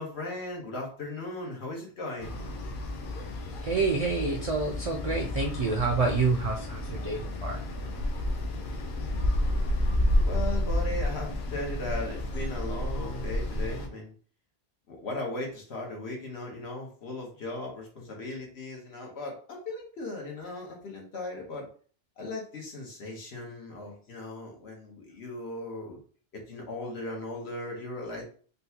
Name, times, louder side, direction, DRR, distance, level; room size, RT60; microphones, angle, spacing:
voice 1, 0.0-2.4 10.2-14.1 14.9-21.7 22.2-26.0 26.5-28.2, left 2 dB, 90° left, 0 dB, 1.3 m, -37 dB
sound 1, 2.2-13.9, left 1 dB, 60° left, 0.7 m, -30 dB
voice 2, 3.6-7.6, right 4 dB, 50° right, 3 dB, 0.4 m, -28 dB
4.0 x 2.2 x 2.8 m, 0.42 s
omnidirectional pair, 1.1 m